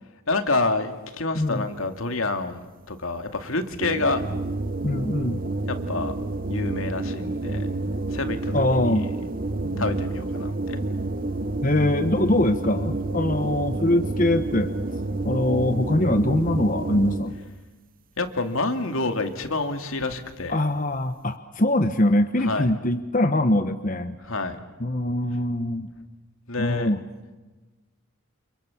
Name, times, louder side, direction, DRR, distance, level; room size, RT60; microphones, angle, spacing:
voice 1, 0.3-4.2 5.7-6.2 6.5-7.7 8.1-8.8 9.8-10.8 18.2-20.6 22.4-22.7 24.2-24.6 26.5-26.9, left 3 dB, 75° left, 6 dB, 2.5 m, -28 dB
voice 2, 1.4-1.7 4.8-5.4 8.5-9.1 9.7-9.9 11.6-14.7 15.2-17.3 20.5-24.1 24.8-25.9 26.6-27.0, left 1 dB, 40° left, 8 dB, 1.0 m, -23 dB
sound 1, 3.8-17.5, right 2 dB, 40° right, 1.1 m, -29 dB
29.5 x 27.5 x 7.3 m, 1.2 s
head